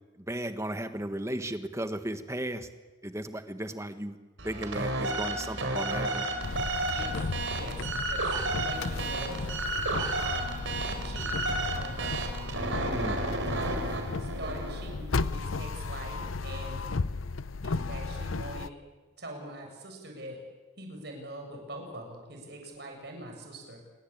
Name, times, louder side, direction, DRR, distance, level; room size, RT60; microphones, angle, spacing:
voice 1, 0.2-2.7 3.0-4.2 4.4-6.3 12.9-13.2, right 1 dB, 15° right, 9 dB, 1.4 m, -35 dB
sound 1, 4.4-15.0, right 2 dB, 70° right, 4.6 m, -32 dB
sound 2, 6.4-18.7, left 3 dB, 90° left, 0.8 m, -35 dB
voice 2, 6.8-7.2 7.5-9.4 10.2-12.2 13.6-16.8 17.6-18.7 19.2-20.4 20.8-23.8, right 1 dB, 55° right, 3 dB, 7.0 m, -43 dB
27.5 x 21.5 x 8.7 m, 1.3 s
head